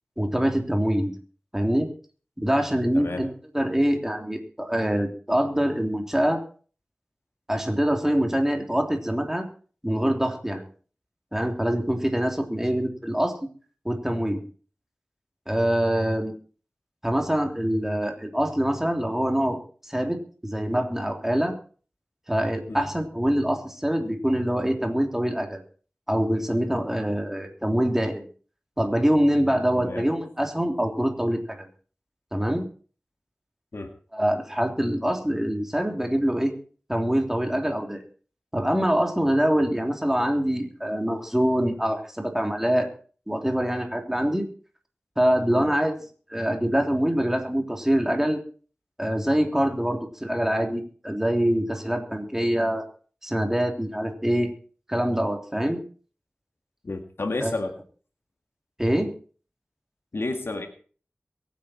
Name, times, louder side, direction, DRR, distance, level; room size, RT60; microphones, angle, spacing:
voice 1, 0.2-1.1 1.5-1.9 2.4-3.3 3.5-6.4 7.5-9.5 9.8-10.7 11.3-13.3 13.8-14.4 15.5-16.3 17.0-19.6 19.8-21.5 22.3-25.6 26.1-28.3 28.8-31.7 32.3-32.7 34.1-36.5 36.9-38.0 38.5-42.9 43.3-44.4 45.2-45.9 46.3-48.4 49.0-52.8 53.2-54.5 54.9-55.8 57.4-57.5 58.8-59.1, equal, 10° right, 3 dB, 3.2 m, -24 dB
voice 2, 2.9-3.3 22.7-22.8 29.8-30.1 33.7-34.0 45.5-45.7 56.8-57.7 60.1-60.7, left 2 dB, 80° left, 5 dB, 2.0 m, -31 dB
23.0 x 9.3 x 4.5 m, 0.42 s
wide cardioid pair, 60°, 4 cm